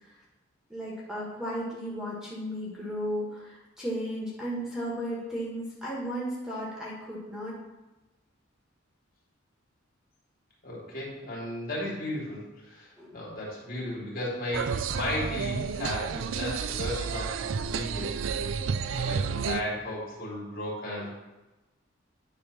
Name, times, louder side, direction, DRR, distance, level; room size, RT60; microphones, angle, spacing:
voice 1, 0.7-7.6 13.0-13.2 19.3-19.4, equal, 5° right, -6 dB, 1.7 m, -35 dB
voice 2, 10.6-18.1 18.9-21.1, left 1 dB, 50° left, -6 dB, 2.9 m, -35 dB
sound 1, 14.5-19.6, right 6 dB, 70° right, 0.4 m, -31 dB
10.0 x 3.5 x 5.9 m, 1.1 s
head